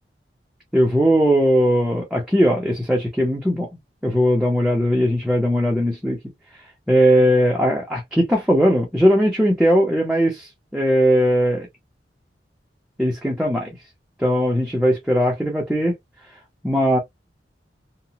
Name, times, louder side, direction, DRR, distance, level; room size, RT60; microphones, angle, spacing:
voice 1, 0.7-3.7 4.0-6.2 6.9-11.7 13.0-13.7 14.2-15.9 16.6-17.0, equal, 5° right, 0.6 m, -19 dB
2.9 x 2.1 x 2.8 m
head